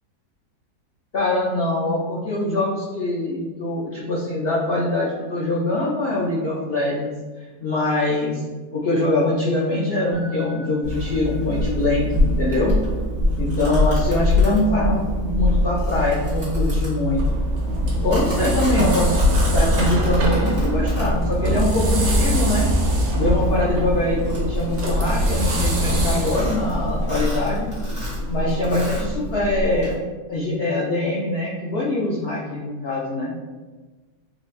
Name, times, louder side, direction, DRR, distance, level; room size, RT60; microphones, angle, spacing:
voice 1, 1.1-7.1 7.6-8.4 8.7-12.7 13.4-17.4 18.0-19.2 19.5-22.7 23.1-27.7 28.3-29.9 30.3-33.3, left 2 dB, 90° left, -5 dB, 0.5 m, -23 dB
sound 1, 10.1-21.8, left 6 dB, 30° left, 1.4 m, -36 dB
Domestic sounds home sounds, 10.8-29.9, equal, 30° right, 1.5 m, -23 dB
sound 2, 17.0-27.4, equal, 75° right, 1.4 m, -25 dB
4.0 x 2.5 x 3.2 m, 1.3 s
omnidirectional pair, 1.8 m